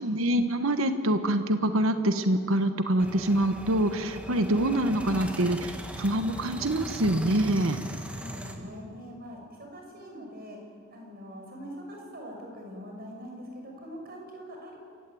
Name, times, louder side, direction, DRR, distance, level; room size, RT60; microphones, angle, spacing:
voice 1, 0.0-7.8, right 1 dB, 75° right, 9 dB, 1.3 m, -25 dB
sound 1, 3.0-8.6, equal, 5° right, 1.8 m, -39 dB
voice 2, 8.1-10.6 10.9-14.8, equal, 45° right, 1 dB, 6.1 m, -43 dB
27.5 x 16.0 x 9.3 m, 2.1 s
head